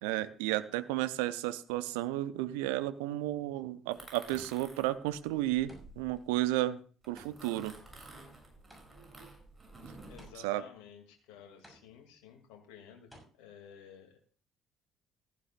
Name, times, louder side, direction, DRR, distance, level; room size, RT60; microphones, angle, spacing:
voice 1, 0.0-7.8 9.8-9.9 10.4-10.6, right 15 dB, 70° right, 14 dB, 0.7 m, -33 dB
sound 1, 3.9-6.5 7.0-10.3, right 2 dB, 20° right, 7.7 m, -52 dB
sound 2, 4.3-4.9 5.7-6.2 7.2-9.2 10.2-10.8 11.6-12.2 13.1-13.2, equal, 5° left, 6.5 m, -57 dB
voice 2, 10.1-14.2, left 8 dB, 70° left, 4 dB, 2.5 m, -54 dB
15.0 x 14.5 x 2.5 m, 0.40 s
figure-of-eight pair, 50°, 0 cm